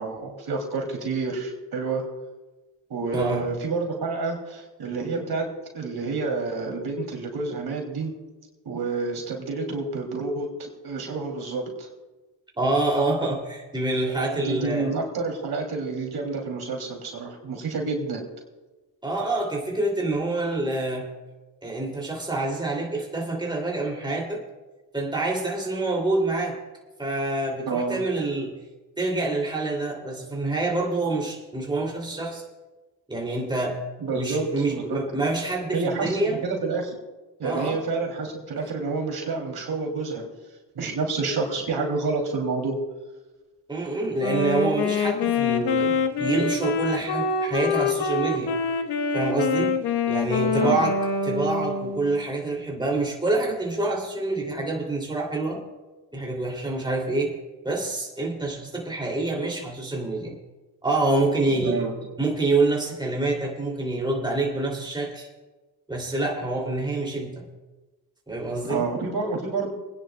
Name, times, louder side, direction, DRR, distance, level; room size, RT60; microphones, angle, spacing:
voice 1, 0.0-2.1 2.9-8.2 8.6-11.9 14.1-18.2 27.7-28.0 34.0-35.2 35.7-37.0 37.4-40.3 40.7-42.8 50.5-50.8 61.6-61.9 68.6-69.7, right 4 dB, 65° right, 1 dB, 2.8 m, -29 dB
voice 2, 3.1-3.5 12.6-14.9 19.0-21.1 21.6-24.4 24.9-26.6 27.0-28.6 29.0-32.4 33.1-33.8 34.1-36.4 37.4-37.8 43.7-48.6 49.1-49.8 50.1-51.0 51.3-55.6 56.1-57.4 57.6-60.4 60.8-61.8 62.2-65.3 65.9-67.5 68.3-68.8, right 2 dB, 10° right, -1 dB, 2.6 m, -26 dB
Wind instrument woodwind instrument, 44.2-52.2, left 4 dB, 80° left, 1.3 m, -25 dB
27.5 x 10.0 x 2.2 m, 1.2 s
cardioid pair, 70°, 41 cm